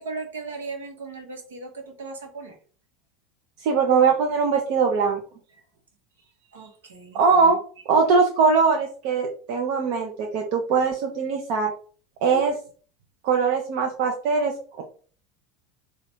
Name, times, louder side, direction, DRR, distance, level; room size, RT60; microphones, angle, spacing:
voice 1, 0.0-2.6 5.5-5.6 6.5-7.2, right 3 dB, 75° right, 4 dB, 1.1 m, -37 dB
voice 2, 3.6-5.2 7.1-7.6 7.9-11.7 12.2-12.6 13.2-14.8, right 5 dB, 55° right, 2 dB, 0.7 m, -21 dB
4.0 x 2.4 x 4.4 m, 0.43 s
figure-of-eight pair, 80°, 0 cm